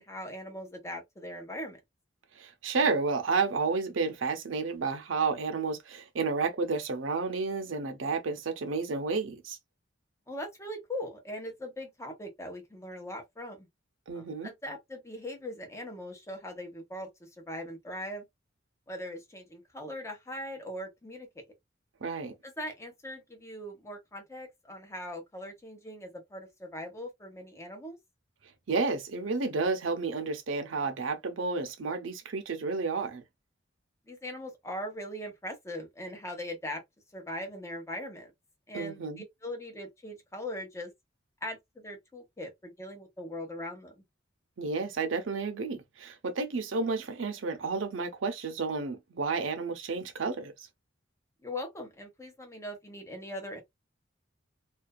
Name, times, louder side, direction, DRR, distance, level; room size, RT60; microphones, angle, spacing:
voice 1, 0.0-1.8 10.3-13.7 14.1-18.2 18.9-21.4 22.4-28.0 34.1-36.8 37.1-38.3 38.7-39.0 39.4-40.9 41.4-44.0 51.4-53.6, left 1 dB, 15° left, 0.8 m, -40 dB
voice 2, 2.4-9.6 14.1-14.5 22.0-22.3 28.7-33.2 38.7-39.2 44.6-50.5, right 4 dB, 85° right, 0.6 m, -31 dB
2.4 x 2.3 x 2.2 m
head